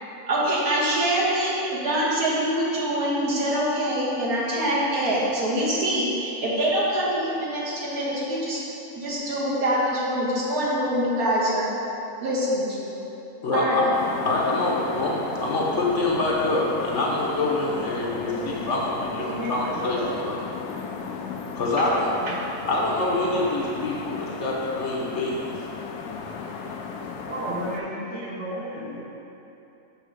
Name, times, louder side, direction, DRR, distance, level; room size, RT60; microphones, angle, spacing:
voice 1, 0.3-8.6 9.0-11.7 12.2-12.9 13.5-13.8, right 1 dB, 70° right, -7 dB, 1.9 m, -24 dB
voice 2, 13.4-13.9 14.2-20.4 21.5-22.1 22.7-25.7, left 2 dB, 55° left, -3 dB, 1.0 m, -25 dB
sound 1, 13.9-27.8, left 5 dB, 85° left, 1.1 m, -35 dB
voice 3, 18.2-18.6 19.2-19.5 19.9-20.1 22.2-22.3 27.3-29.0, right 1 dB, 50° right, -4 dB, 1.1 m, -32 dB
7.0 x 3.3 x 6.2 m, 3.0 s
omnidirectional pair, 1.6 m